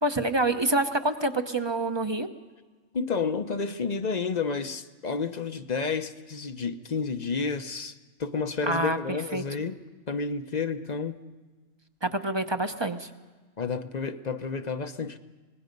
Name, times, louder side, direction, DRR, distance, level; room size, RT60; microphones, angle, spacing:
voice 1, 0.0-2.3 8.7-9.0 9.3-9.4 12.0-13.1, right 2 dB, 25° right, 8 dB, 0.9 m, -26 dB
voice 2, 2.9-9.8 10.1-11.2 13.6-15.2, left 5 dB, 40° left, 10 dB, 0.8 m, -30 dB
26.0 x 20.0 x 5.3 m, 1.3 s
omnidirectional pair, 1.3 m